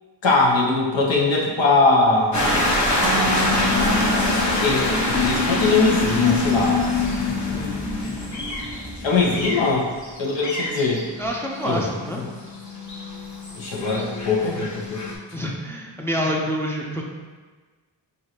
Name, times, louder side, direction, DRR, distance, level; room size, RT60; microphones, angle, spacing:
voice 1, 0.2-2.4 4.1-4.3 4.6-6.8 9.0-9.9 10.2-11.0 11.6-11.8 12.1-12.3 13.5-15.0, left 3 dB, 80° left, -3 dB, 0.9 m, -21 dB
sound 1, 2.3-15.2, left 2 dB, 40° left, 1.0 m, -24 dB
sound 2, 3.0-5.1, right 4 dB, 75° right, 0.7 m, -30 dB
voice 2, 11.2-12.2 15.3-17.0, equal, 5° left, -2 dB, 0.5 m, -27 dB
4.8 x 2.6 x 2.9 m, 1.4 s
cardioid pair, 45°, 44 cm